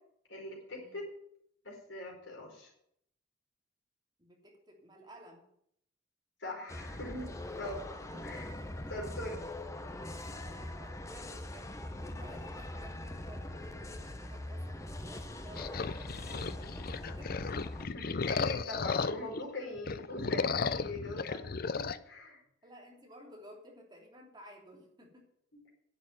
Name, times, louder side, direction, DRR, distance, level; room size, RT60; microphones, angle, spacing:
voice 1, 0.3-1.1 1.6-2.7 6.4-8.0 8.2-8.5 8.9-9.4 17.9-21.4 21.8-22.4, left 2 dB, 65° left, -1 dB, 4.9 m, -42 dB
voice 2, 4.2-5.5 8.0-9.4 10.7-17.4 22.6-25.3, equal, 20° right, 0 dB, 3.1 m, -55 dB
sound 1, 6.7-17.9, left 1 dB, 15° left, 0.9 m, -42 dB
sound 2, 15.6-19.4 19.8-22.0, left 4 dB, 50° left, 0.5 m, -34 dB
11.0 x 7.2 x 9.1 m, 0.71 s
head